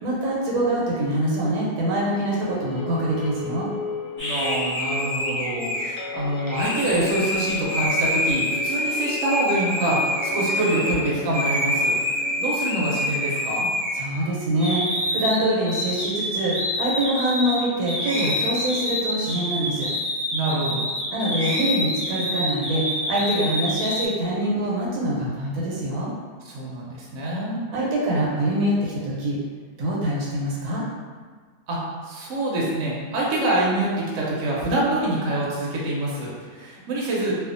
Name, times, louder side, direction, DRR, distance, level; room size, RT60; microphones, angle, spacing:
voice 1, 0.0-3.7 13.9-19.9 21.1-26.1 27.7-29.4 29.8-30.8, right 1 dB, 85° right, -4 dB, 1.2 m, -24 dB
sound 1, 2.2-12.5, left 4 dB, 80° left, 0.5 m, -35 dB
sound 2, 4.2-11.0 11.3-14.2 14.6-24.1, left 1 dB, 10° left, 0.8 m, -27 dB
voice 2, 4.2-11.9 12.4-13.7 20.3-20.9 26.5-27.6 31.7-37.3, right 1 dB, 65° right, -5 dB, 0.9 m, -26 dB
2.5 x 2.3 x 2.5 m, 1.5 s
omnidirectional pair, 1.6 m